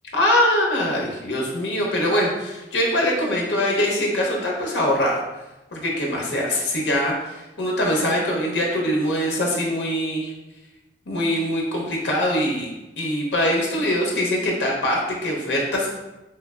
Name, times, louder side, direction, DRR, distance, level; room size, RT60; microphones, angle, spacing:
voice 1, 0.1-5.2 5.7-10.3 11.1-12.7 13.0-15.9, left 1 dB, 75° left, -2 dB, 0.7 m, -23 dB
3.2 x 3.1 x 2.3 m, 1.0 s
head